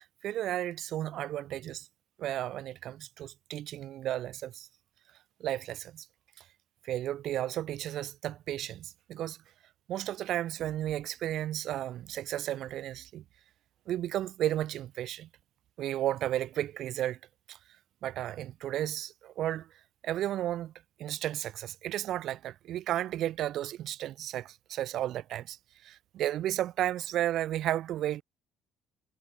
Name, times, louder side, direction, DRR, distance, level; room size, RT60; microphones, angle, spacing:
voice 1, 0.0-1.9 2.2-4.7 5.4-6.1 6.8-9.4 9.9-13.2 13.9-15.3 15.8-17.2 17.5-17.6 18.0-19.7 20.0-20.7 21.0-25.6 25.8-28.2, right 12 dB, 60° right, 1.7 m, -33 dB
hypercardioid pair, 55°, 0 cm